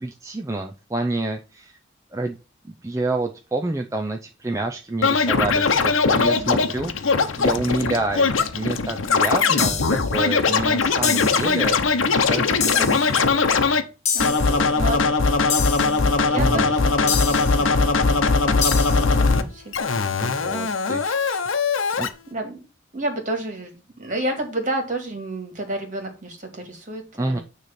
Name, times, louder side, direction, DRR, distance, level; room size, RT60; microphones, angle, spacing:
voice 1, 0.0-1.8 2.1-2.4 2.6-11.8 12.1-13.3 14.3-14.7 16.3-16.7 20.2-21.4 22.0-22.1 27.2-27.4, right 2 dB, 15° right, 3 dB, 0.5 m, -28 dB
Scratching (performance technique), 5.0-13.8 14.2-19.4 19.7-22.1, left 4 dB, 85° left, 0.8 m, -20 dB
voice 2, 6.1-6.6 12.6-13.0 14.1-15.0 15.5-19.7 21.3-21.4 22.3-22.6 22.9-27.4, right 1 dB, 40° right, 3 dB, 2.0 m, -31 dB
sound 1, 9.6-10.1 11.0-11.5 12.6-13.1 14.1-14.6 15.5-16.0 17.1-17.6 18.6-19.1, left 7 dB, 35° left, 1.5 m, -26 dB
9.5 x 3.2 x 5.9 m, 0.32 s
head